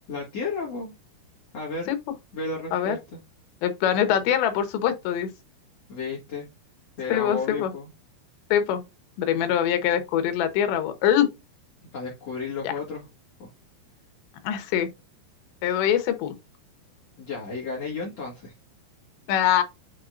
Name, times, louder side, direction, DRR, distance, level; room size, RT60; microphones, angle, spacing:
voice 1, 0.1-0.9 1.5-1.9 2.3-3.0 5.9-6.5 7.0-7.9 11.9-13.0 13.4-13.5 17.2-18.5, left 4 dB, 50° left, 2.1 m, -32 dB
voice 2, 3.6-5.3 7.1-7.7 8.5-8.8 9.2-11.3 12.6-12.7 14.4-14.9 15.6-16.3 19.3-19.6, left 10 dB, 85° left, 3.3 m, -23 dB
10.0 x 4.9 x 2.5 m
omnidirectional pair, 5.0 m